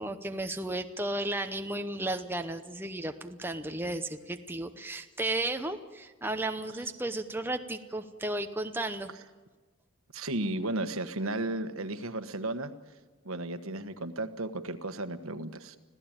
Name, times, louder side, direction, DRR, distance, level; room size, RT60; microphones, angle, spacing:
voice 1, 0.0-9.1, right 2 dB, 10° right, 6 dB, 0.8 m, -34 dB
voice 2, 10.1-12.7 13.2-15.8, right 2 dB, 70° right, 10 dB, 1.4 m, -34 dB
26.0 x 16.0 x 8.9 m, 1.3 s
head